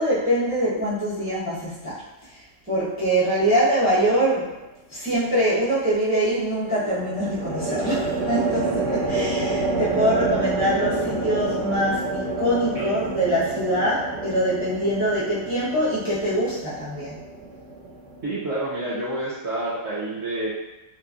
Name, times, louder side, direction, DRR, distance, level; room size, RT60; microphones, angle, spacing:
voice 1, 0.0-2.0 2.7-4.6 4.9-17.2, equal, 15° right, -11 dB, 0.6 m, -23 dB
sound 1, 3.8-4.4 6.9-18.3, right 3 dB, 90° right, 1.1 m, -28 dB
voice 2, 18.2-20.5, right 2 dB, 60° right, -8 dB, 0.9 m, -29 dB
3.0 x 2.3 x 2.3 m, 1.0 s
omnidirectional pair, 1.4 m